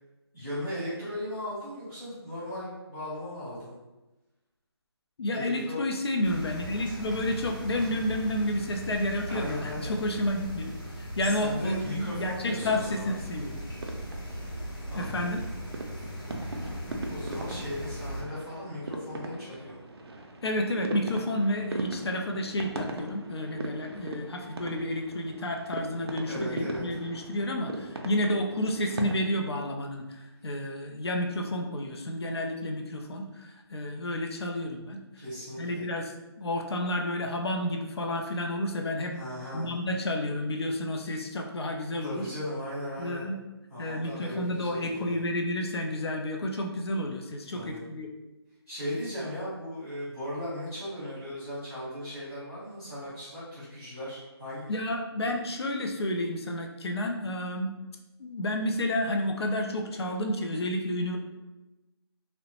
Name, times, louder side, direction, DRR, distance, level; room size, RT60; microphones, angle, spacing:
voice 1, 0.3-3.8 5.3-5.8 9.3-10.0 11.2-13.1 14.8-15.3 16.6-16.7 17.1-19.8 26.3-26.8 35.2-35.8 39.1-39.7 42.0-43.3 43.7-45.2 47.5-47.8 48.7-54.8, left 1 dB, 10° left, -15 dB, 0.5 m, -37 dB
voice 2, 5.2-13.6 14.9-15.4 20.4-35.0 35.6-39.2 39.5-42.3 43.0-43.4 43.8-48.1 54.7-57.7 58.2-61.2, left 1 dB, 65° left, 2 dB, 0.4 m, -30 dB
sound 1, 6.2-18.2, equal, 45° left, 0.8 m, -39 dB
sound 2, 12.6-29.2, right 2 dB, 65° right, 0.4 m, -40 dB
3.0 x 2.0 x 2.8 m, 1.1 s
hypercardioid pair, 180°, 14 cm